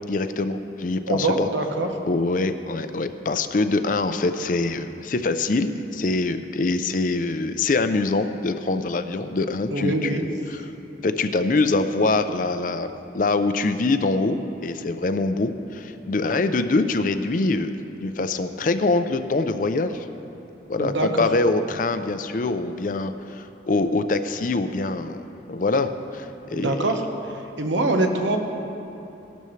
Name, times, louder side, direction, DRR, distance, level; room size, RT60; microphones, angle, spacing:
voice 1, 0.1-1.5 2.1-10.2 10.5-10.6 11.0-12.9 13.1-17.7 18.0-20.1 20.7-26.9, left 3 dB, 45° left, 10 dB, 0.5 m, -24 dB
voice 2, 1.1-1.9 9.7-10.3 20.8-21.1 26.5-27.0 27.6-28.4, right 2 dB, 85° right, 4 dB, 1.1 m, -23 dB
16.5 x 12.0 x 3.2 m, 2.9 s
head